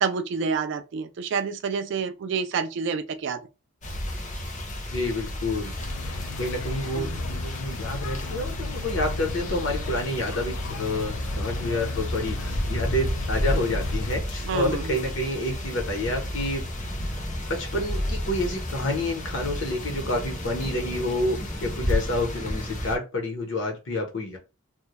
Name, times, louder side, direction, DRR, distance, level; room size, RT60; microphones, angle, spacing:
voice 1, 0.0-3.4 6.9-7.2 14.4-15.0, right 5 dB, 60° right, 0.3 m, -28 dB
sound 1, 3.8-23.0, left 1 dB, 35° left, 0.6 m, -32 dB
voice 2, 4.9-5.7 6.4-16.6 17.5-24.4, left 1 dB, 65° left, 0.8 m, -29 dB
sound 2, 5.8-14.1, left 4 dB, 85° left, 0.3 m, -37 dB
sound 3, 8.8-23.0, equal, 5° right, 0.6 m, -40 dB
2.2 x 2.1 x 2.9 m
head